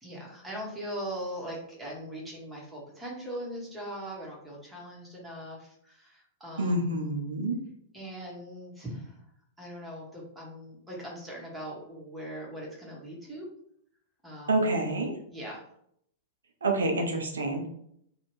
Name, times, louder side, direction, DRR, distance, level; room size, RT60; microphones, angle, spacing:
voice 1, 0.0-7.1 7.9-9.2 9.6-13.5 14.2-14.7 15.3-15.6, equal, 10° right, -4 dB, 1.1 m, -40 dB
voice 2, 6.6-7.6 14.5-15.1 16.6-17.7, right 2 dB, 75° right, 3 dB, 0.7 m, -27 dB
2.7 x 2.4 x 3.1 m, 0.70 s
figure-of-eight pair, 100°, 0 cm